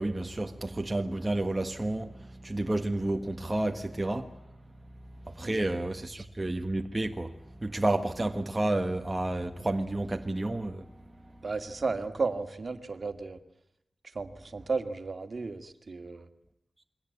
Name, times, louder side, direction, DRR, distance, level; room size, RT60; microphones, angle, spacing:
voice 1, 0.0-4.4 5.2-10.9 11.3-11.4, right 2 dB, 15° right, 1.4 m, -31 dB
voice 2, 11.4-13.4 14.1-16.3, right 4 dB, 45° right, 2.2 m, -34 dB
28.5 x 23.0 x 8.5 m
wide cardioid pair, 115°, 0 cm